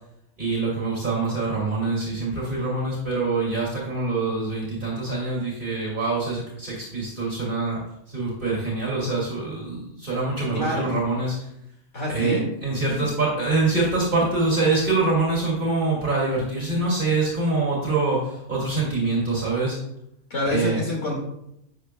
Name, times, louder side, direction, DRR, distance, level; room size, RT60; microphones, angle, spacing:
voice 1, 0.4-7.8 8.1-11.5 12.1-19.8 20.5-20.8, right 3 dB, 35° right, -5 dB, 2.4 m, -25 dB
voice 2, 10.5-11.0 11.9-12.5 12.9-13.1 20.3-21.2, left 2 dB, 55° left, -2 dB, 2.4 m, -27 dB
11.5 x 7.9 x 2.2 m, 0.81 s
omnidirectional pair, 1.5 m